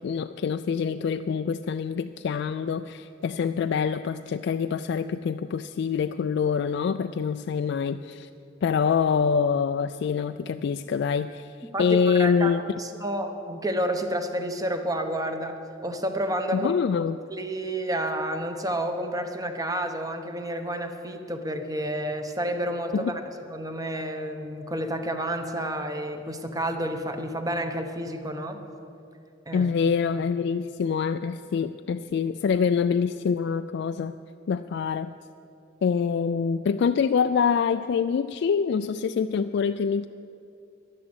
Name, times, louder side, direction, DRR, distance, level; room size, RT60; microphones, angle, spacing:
voice 1, 0.0-8.3 8.6-12.6 16.5-17.2 22.9-23.1 29.5-34.2 34.5-35.1 35.8-40.1, left 6 dB, 60° left, 9 dB, 0.3 m, -25 dB
voice 2, 11.7-16.7 17.3-23.2 23.5-28.6 29.5-29.7, right 1 dB, 20° right, 6 dB, 1.0 m, -30 dB
11.5 x 11.0 x 7.9 m, 2.6 s
head